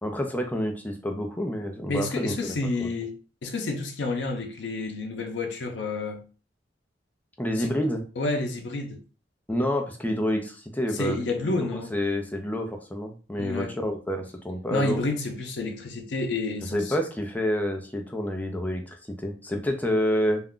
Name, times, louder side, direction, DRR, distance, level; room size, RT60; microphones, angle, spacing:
voice 1, 0.0-2.9 7.4-8.0 9.5-15.0 16.7-20.4, equal, 10° left, 0.4 m, -28 dB
voice 2, 1.9-6.2 7.6-7.7 8.2-9.0 10.9-11.9 13.4-13.7 14.7-16.9, left 2 dB, 85° left, 0.5 m, -30 dB
2.4 x 2.2 x 3.6 m
head